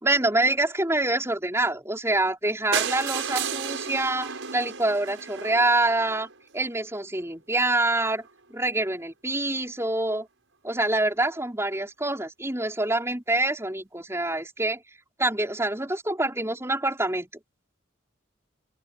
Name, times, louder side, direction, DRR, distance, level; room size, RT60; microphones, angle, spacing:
voice 1, 0.0-6.3 6.5-10.3 10.6-14.8 15.2-17.3, right 2 dB, 15° right, 5.1 m, -26 dB
sound 1, 2.7-6.6 7.3-7.4 7.6-7.7 8.0-8.1 8.3-8.4, right 7 dB, 90° right, 6.0 m, -32 dB
open air
head